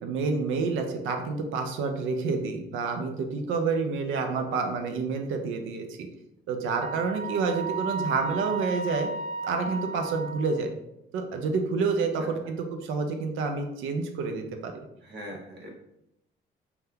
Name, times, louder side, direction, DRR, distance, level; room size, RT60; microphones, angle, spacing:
voice 1, 0.0-5.9 6.5-9.1 9.4-10.7 11.1-12.6 12.9-14.7, right 4 dB, 85° right, 5 dB, 0.5 m, -28 dB
Wind instrument woodwind instrument, 6.8-10.6, right 4 dB, 35° right, 0.6 m, -34 dB
voice 2, 7.3-7.7 12.2-12.5 15.0-15.7, equal, 60° right, -1 dB, 1.0 m, -43 dB
3.4 x 2.2 x 2.7 m, 0.82 s
cardioid pair, 90°, 20 cm